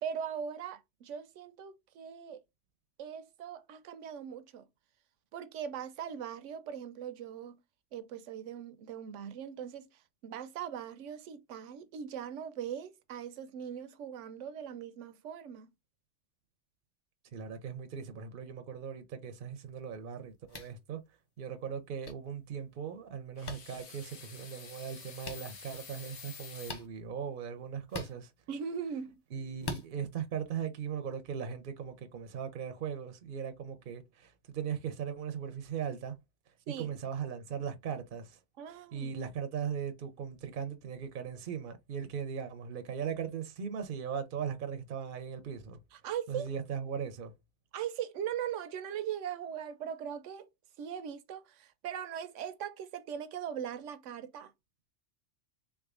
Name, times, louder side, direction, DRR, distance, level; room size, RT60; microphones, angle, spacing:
voice 1, 0.0-2.4 3.0-4.7 5.3-7.6 7.9-9.9 10.2-15.7 28.5-29.2 36.7-36.9 38.6-39.1 45.9-46.5 47.7-50.5 50.8-54.5, right 8 dB, 80° right, 0.9 m, -40 dB
voice 2, 17.3-21.0 21.4-28.3 29.3-36.2 36.7-38.4 38.9-45.8 46.3-47.3, right 7 dB, 55° right, 0.7 m, -38 dB
sound 1, 20.5-20.7 22.0-22.1 23.4-23.6 25.2-25.4 26.6-26.9 27.9-28.1 29.6-29.9, left 2 dB, 30° left, 0.4 m, -40 dB
sound 2, 23.4-26.7, left 6 dB, 70° left, 1.2 m, -49 dB
3.6 x 3.4 x 2.4 m
omnidirectional pair, 1.2 m